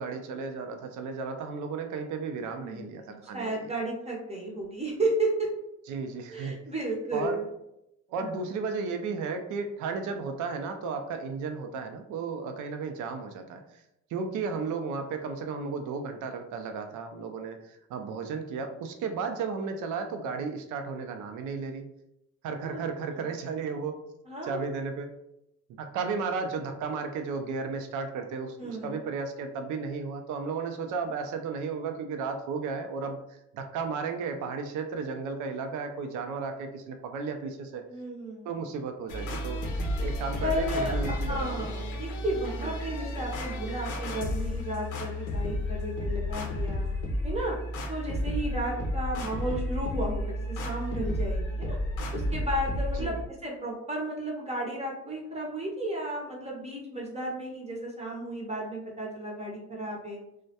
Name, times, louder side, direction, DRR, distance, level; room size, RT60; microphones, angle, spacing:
voice 1, 0.0-3.6 5.9-6.6 7.1-7.4 8.1-13.6 14.1-21.8 22.4-23.9 24.4-25.1 25.8-33.2 33.5-37.8 38.4-39.6 40.0-41.7 42.6-42.8 48.7-48.8 53.0-53.2, right 5 dB, 80° right, 6 dB, 0.4 m, -34 dB
voice 2, 2.5-5.5 6.3-7.5 8.2-8.4 22.6-22.8 23.1-23.2 24.3-24.7 28.6-29.0 37.9-38.5 40.4-46.9 47.2-47.5 47.9-51.8 52.1-53.1 53.4-60.2, right 1 dB, 20° right, -2 dB, 0.6 m, -33 dB
sound 1, 39.1-53.2, left 1 dB, 80° left, 0.5 m, -32 dB
2.2 x 2.1 x 2.7 m, 0.82 s
cardioid pair, 90°, 30 cm